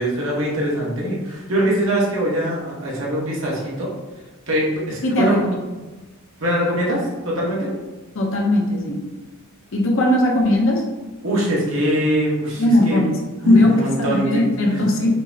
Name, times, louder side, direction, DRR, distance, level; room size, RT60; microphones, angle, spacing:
voice 1, 0.0-3.9 4.5-5.4 6.4-7.7 11.2-13.0 13.4-14.8, right 1 dB, 65° right, -4 dB, 1.0 m, -22 dB
voice 2, 5.0-5.6 8.1-9.1 9.7-10.9 12.6-15.2, left 1 dB, 65° left, 0 dB, 0.6 m, -18 dB
5.3 x 2.0 x 2.7 m, 1.2 s
head